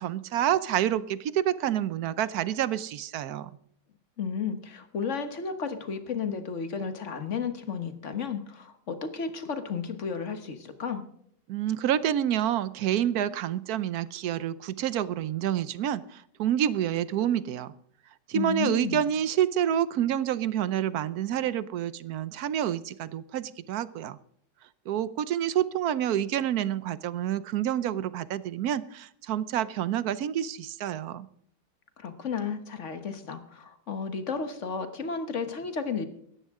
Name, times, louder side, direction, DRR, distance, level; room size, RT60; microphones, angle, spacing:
voice 1, 0.0-3.5 11.5-17.7 18.3-24.2 24.9-31.3, right 10 dB, 70° right, 16 dB, 1.1 m, -28 dB
voice 2, 4.2-11.0 18.3-19.1 32.0-36.1, left 6 dB, 50° left, 9 dB, 1.5 m, -33 dB
17.5 x 13.5 x 3.7 m, 0.68 s
omnidirectional pair, 1.8 m